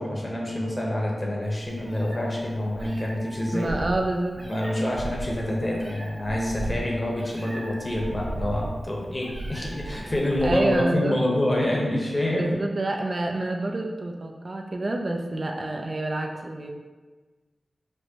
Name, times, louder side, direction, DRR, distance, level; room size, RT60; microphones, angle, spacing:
voice 1, 0.0-3.7 4.5-12.5, left 1 dB, 35° left, -2 dB, 0.9 m, -27 dB
Meow, 1.5-10.8, right 1 dB, 75° right, 1.2 m, -36 dB
voice 2, 3.5-4.4 10.4-11.2 12.3-16.7, right 2 dB, 50° right, 2 dB, 0.4 m, -27 dB
4.4 x 2.1 x 2.8 m, 1.3 s
cardioid pair, 45°, 0 cm